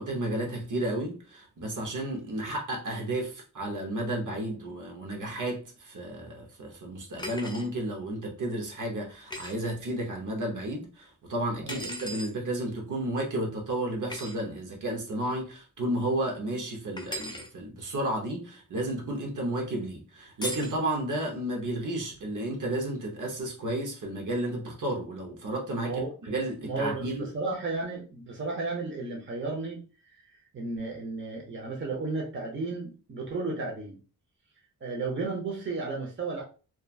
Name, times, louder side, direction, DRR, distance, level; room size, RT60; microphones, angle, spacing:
voice 1, 0.0-25.9 26.2-27.2, right 1 dB, 65° right, 0.9 m, -32 dB
sound 1, 7.2-7.7 9.3-9.5 11.7-12.3 14.1-14.3 17.0-17.5 20.4-20.8, equal, 15° left, 0.5 m, -37 dB
voice 2, 25.7-26.1 26.6-29.8 30.5-34.0 34.8-36.4, right 3 dB, 35° right, 0.8 m, -33 dB
2.9 x 2.3 x 2.4 m
wide cardioid pair, 100°, 34 cm